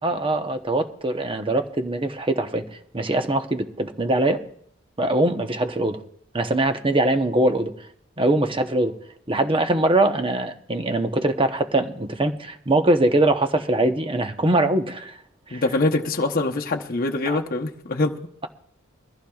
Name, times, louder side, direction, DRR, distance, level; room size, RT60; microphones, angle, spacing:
voice 1, 0.0-2.6 2.9-4.4 5.0-6.0 6.3-7.7 8.2-8.9 9.3-15.2 15.5-15.6 17.3-17.4, right 2 dB, 25° right, 7 dB, 0.9 m, -22 dB
voice 2, 15.5-18.2, left 2 dB, 45° left, 2 dB, 0.9 m, -24 dB
22.5 x 14.5 x 2.4 m, 0.67 s
head